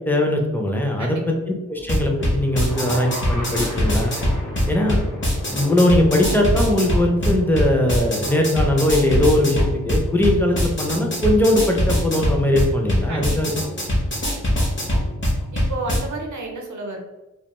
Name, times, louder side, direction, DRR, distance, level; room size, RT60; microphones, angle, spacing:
voice 1, 0.1-1.2 1.7-4.1 4.7-5.0 5.5-13.5, left 1 dB, 5° left, 0 dB, 0.4 m, -20 dB
voice 2, 1.0-1.5 13.1-13.4 15.5-17.0, right 2 dB, 80° right, 1 dB, 0.6 m, -31 dB
sound 1, 1.8-16.0, equal, 40° left, 0.7 m, -23 dB
sound 2, 2.6-8.8, left 1 dB, 85° left, 0.7 m, -37 dB
2.2 x 2.2 x 2.9 m, 1.1 s
wide cardioid pair, 105°, 29 cm